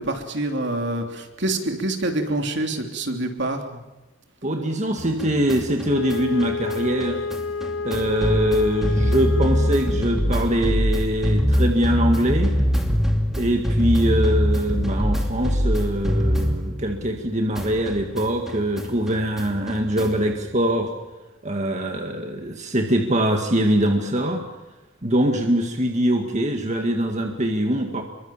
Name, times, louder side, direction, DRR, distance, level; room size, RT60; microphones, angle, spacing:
voice 1, 0.0-3.8, right 2 dB, 60° right, 4 dB, 3.1 m, -26 dB
voice 2, 4.4-7.2 7.8-12.6 13.4-20.9 21.4-24.4 25.0-28.0, right 1 dB, 35° right, 3 dB, 2.0 m, -23 dB
sound 1, 5.0-17.3 17.5-20.3, equal, ahead, 2.7 m, -24 dB
Wind instrument woodwind instrument, 5.8-10.4, left 4 dB, 80° left, 1.0 m, -30 dB
27.0 x 24.0 x 7.4 m, 1.1 s
head